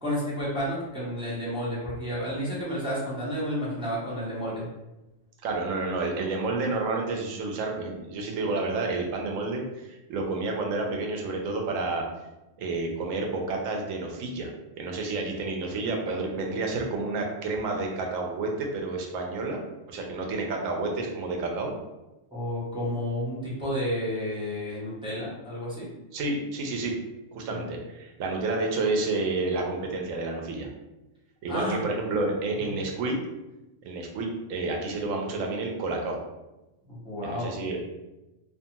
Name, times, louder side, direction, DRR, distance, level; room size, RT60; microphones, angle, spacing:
voice 1, 0.0-4.7 6.6-6.7 22.3-25.9 27.4-27.7 31.5-31.8 32.5-32.7 36.9-37.5, equal, 5° right, -9 dB, 0.7 m, -31 dB
voice 2, 5.4-12.0 12.6-14.5 14.8-21.8 26.1-26.9 27.3-30.7 31.4-33.2 33.8-36.2 37.2-37.8, right 3 dB, 80° right, 1 dB, 1.0 m, -30 dB
2.5 x 2.3 x 2.7 m, 1.0 s
omnidirectional pair, 1.3 m